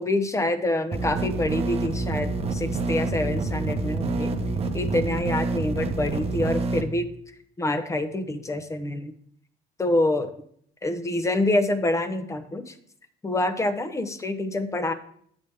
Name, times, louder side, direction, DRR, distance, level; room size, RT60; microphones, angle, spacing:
voice 1, 0.0-4.3 4.7-7.1 7.6-9.1 9.8-10.3 10.8-12.7 13.2-14.9, left 1 dB, 15° left, 10 dB, 0.8 m, -26 dB
sound 1, 0.9-6.8, right 3 dB, 35° right, 0.9 m, -27 dB
8.3 x 7.0 x 3.5 m, 0.64 s
cardioid pair, 110°, 17 cm